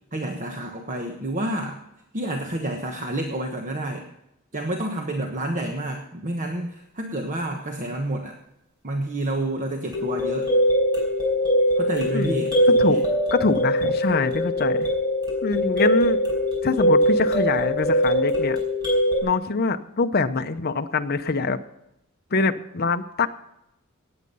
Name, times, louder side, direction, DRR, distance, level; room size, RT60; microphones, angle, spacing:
voice 1, 0.1-1.8 2.1-4.0 4.5-8.4 8.8-10.5 11.8-13.0, right 1 dB, 35° right, 3 dB, 1.2 m, -29 dB
sound 1, 9.9-19.2, equal, 20° right, 5.1 m, -22 dB
voice 2, 13.3-14.9 15.4-16.2 16.6-18.6 19.2-21.6 22.3-23.3, left 4 dB, 45° left, 8 dB, 0.7 m, -24 dB
18.0 x 8.7 x 5.5 m, 0.85 s
head